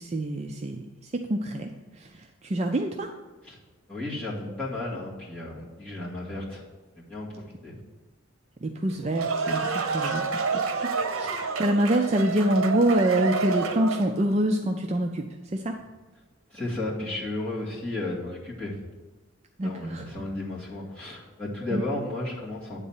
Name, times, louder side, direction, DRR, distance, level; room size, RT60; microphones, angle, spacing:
voice 1, 0.0-3.1 8.6-10.6 11.1-15.3 15.5-15.8 19.6-20.0 21.7-21.8, right 1 dB, 30° right, 3 dB, 0.4 m, -26 dB
voice 2, 3.9-6.6 7.0-7.7 16.5-18.7 19.6-22.8, left 2 dB, 5° left, -9 dB, 2.1 m, -33 dB
sound 1, 8.9-14.2, right 4 dB, 80° right, 0.8 m, -28 dB
9.4 x 4.1 x 7.2 m, 1.2 s
head